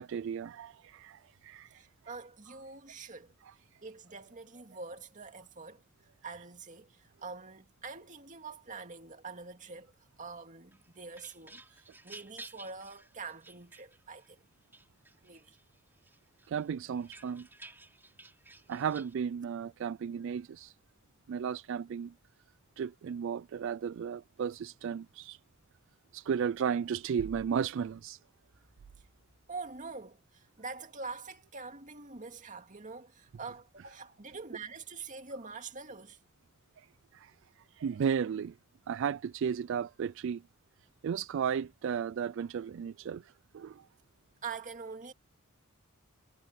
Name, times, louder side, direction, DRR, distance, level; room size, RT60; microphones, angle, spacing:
voice 1, 0.0-1.8 16.5-17.5 18.7-20.7 21.3-22.1 22.8-25.4 26.1-28.2 37.1-37.3 37.8-38.5 38.9-40.4 41.0-43.2 43.5-43.8, right 7 dB, 65° right, 0.3 m, -34 dB
voice 2, 1.7-3.3 3.8-5.8 6.2-14.4 15.2-15.6 29.5-36.2 44.4-45.1, right 4 dB, 40° right, 2.2 m, -45 dB
sound 1, 10.7-14.3 14.7-15.6 16.0-19.1, right 2 dB, 10° right, 2.8 m, -53 dB
head